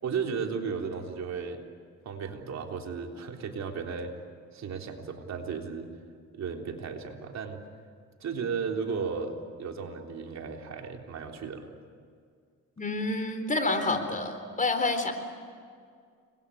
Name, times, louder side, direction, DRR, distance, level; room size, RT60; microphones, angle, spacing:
voice 1, 0.0-1.6 2.0-4.1 4.5-5.9 6.3-7.6 8.2-11.7, right 5 dB, 60° right, 3 dB, 3.6 m, -34 dB
voice 2, 12.8-15.1, left 2 dB, 25° left, 8 dB, 3.9 m, -28 dB
30.0 x 23.0 x 8.6 m, 2.1 s
cardioid pair, 90°, 30 cm